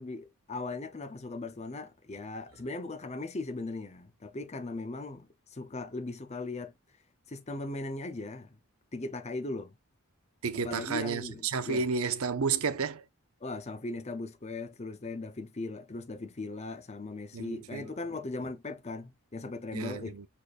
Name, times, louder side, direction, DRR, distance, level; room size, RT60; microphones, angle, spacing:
voice 1, 0.0-6.7 7.3-8.6 8.9-9.7 10.6-12.0 13.4-20.2, left 2 dB, 30° left, 0.7 m, -38 dB
voice 2, 10.4-13.0 17.3-17.9 19.7-20.3, right 5 dB, 70° right, 0.7 m, -31 dB
5.1 x 4.2 x 2.4 m
head